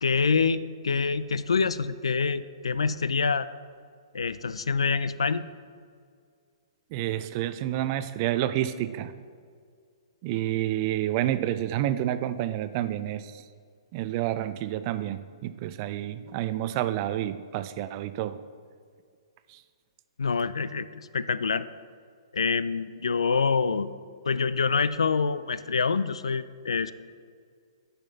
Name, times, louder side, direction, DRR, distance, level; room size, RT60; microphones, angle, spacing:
voice 1, 0.0-3.5 4.1-5.5 20.2-21.7 22.3-23.9 24.3-26.9, left 5 dB, 80° left, 15 dB, 0.3 m, -26 dB
voice 2, 6.9-9.1 10.2-13.4 13.9-18.4 19.5-19.6, right 12 dB, 40° right, 13 dB, 0.4 m, -29 dB
8.9 x 5.7 x 4.0 m, 2.1 s
hypercardioid pair, 125°, 3 cm